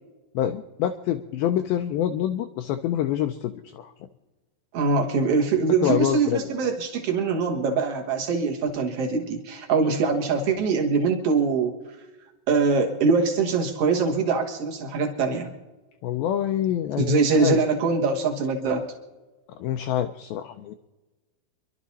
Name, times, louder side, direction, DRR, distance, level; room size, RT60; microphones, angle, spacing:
voice 1, 0.4-3.9 5.8-6.4 16.0-17.6 19.5-20.7, left 10 dB, 90° left, 8 dB, 2.1 m, -26 dB
voice 2, 4.7-11.7 12.5-15.5 17.0-18.9, right 4 dB, 70° right, 2 dB, 1.4 m, -23 dB
27.0 x 12.0 x 4.2 m, 1.2 s
omnidirectional pair, 5.0 m